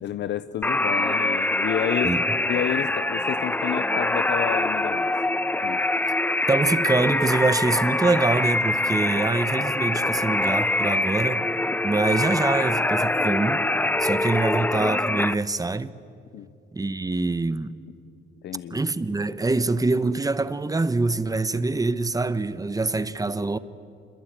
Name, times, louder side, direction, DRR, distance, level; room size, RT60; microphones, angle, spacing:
voice 1, 0.0-2.1 2.5-5.1 5.6-5.9 16.3-16.5 18.4-18.8, left 11 dB, 60° left, 0.6 m, -30 dB
sound 1, 0.6-15.3, left 2 dB, 10° left, 0.6 m, -24 dB
voice 2, 6.5-11.4 11.8-13.6 14.0-15.9 16.7-17.7 18.7-23.6, right 3 dB, 20° right, 1.0 m, -24 dB
26.5 x 22.0 x 8.9 m
cardioid pair, 90°, 20 cm